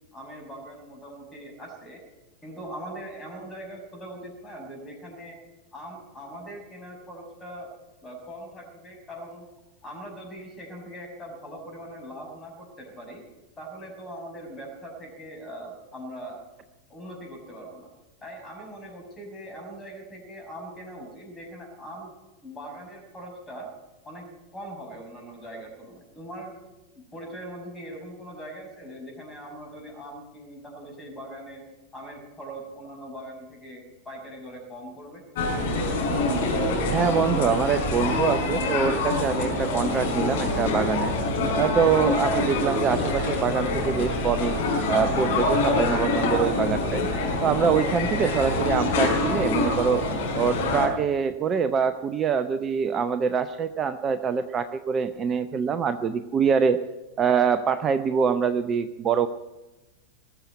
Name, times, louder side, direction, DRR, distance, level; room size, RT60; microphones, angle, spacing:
voice 1, 0.1-2.0 2.4-5.4 5.7-7.7 8.0-9.5 9.8-13.2 13.6-16.4 16.9-17.9 18.2-22.1 22.4-23.7 24.0-24.3 24.5-26.5 27.1-31.6 31.9-35.2, right 1 dB, 15° left, 2 dB, 5.8 m, -41 dB
sound 1, 35.3-50.9, left 2 dB, 55° left, 4.6 m, -25 dB
voice 2, 36.7-41.1 41.5-44.6 44.9-47.1 47.4-50.0 50.3-56.8 57.2-59.3, right 6 dB, 25° right, 11 dB, 0.6 m, -24 dB
20.0 x 7.2 x 9.7 m, 1.1 s
figure-of-eight pair, 90°, 0 cm